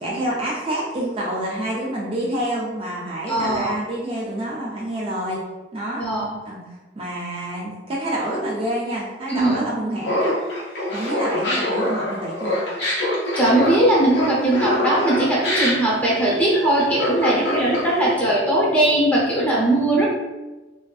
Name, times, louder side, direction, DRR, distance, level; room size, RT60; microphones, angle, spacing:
voice 1, 0.0-5.4 5.7-6.1 6.4-6.6 7.0-10.3 10.9-12.6, right 1 dB, 30° right, -5 dB, 0.4 m, -27 dB
voice 2, 3.3-3.8 6.0-6.3 9.3-9.6 13.3-20.1, right 1 dB, 10° left, -6 dB, 0.7 m, -19 dB
Laughter, 10.0-18.1, left 1 dB, 70° left, 0.8 m, -24 dB
2.4 x 2.4 x 2.3 m, 1.1 s
head